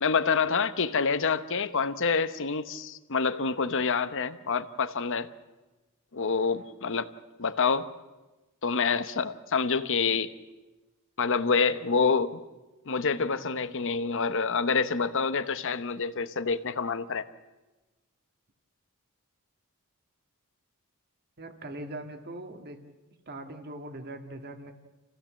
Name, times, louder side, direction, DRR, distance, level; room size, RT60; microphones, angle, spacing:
voice 1, 0.0-5.3 6.1-7.1 7.4-7.9 8.6-10.3 11.2-12.4 12.9-17.3, left 5 dB, 60° left, 12 dB, 1.0 m, -27 dB
voice 2, 21.4-22.9 23.3-24.7, right 1 dB, 45° right, 6 dB, 2.0 m, -41 dB
28.5 x 16.0 x 7.6 m, 1.1 s
head